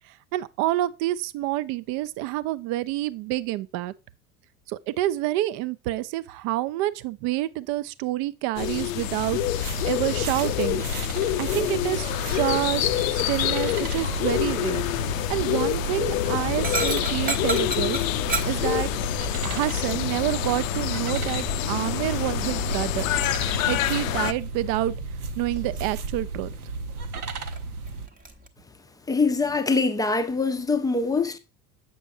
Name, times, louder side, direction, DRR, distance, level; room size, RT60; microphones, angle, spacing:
voice 1, 0.3-3.9 4.7-10.8 11.4-14.8 15.3-18.0 18.4-18.9 19.4-23.1 23.7-24.9 25.4-26.5, right 15 dB, 40° right, 0.5 m, -28 dB
sound 1, 8.6-24.3, left 13 dB, 65° left, 0.5 m, -27 dB
sound 2, 9.3-28.1, right 3 dB, 75° right, 0.9 m, -34 dB
Dog, 11.9-28.5, right 4 dB, 20° right, 0.8 m, -38 dB
voice 2, 29.1-31.4, left 4 dB, 10° left, 0.5 m, -23 dB
8.3 x 6.2 x 2.6 m
figure-of-eight pair, 70°, 45 cm